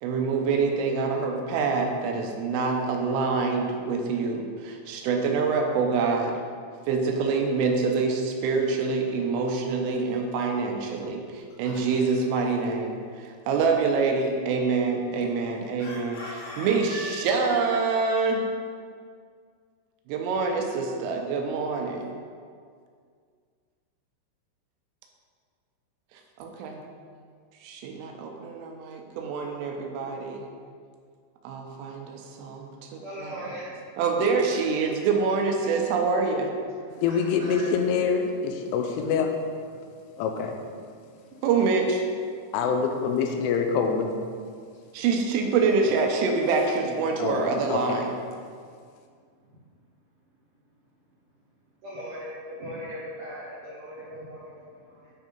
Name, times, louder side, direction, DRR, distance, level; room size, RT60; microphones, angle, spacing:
voice 1, 0.0-6.3 6.9-18.4 20.1-22.1 26.4-26.8 27.6-30.5 31.4-33.3 34.0-36.5 41.4-42.1 44.9-48.1, right 4 dB, 85° right, 2 dB, 3.3 m, -26 dB
Chicken rooster, 11.2-12.4 15.8-17.9, left 1 dB, 65° left, 3.2 m, -39 dB
voice 2, 33.0-33.7 35.6-35.8 37.1-37.7 41.2-41.3 51.8-55.1, equal, 70° right, -10 dB, 1.9 m, -39 dB
voice 3, 37.0-39.3 40.2-40.6 42.5-44.1 47.2-47.4 47.7-48.0, left 6 dB, 80° left, 4 dB, 3.0 m, -25 dB
9.1 x 3.6 x 5.3 m, 2.1 s
omnidirectional pair, 5.7 m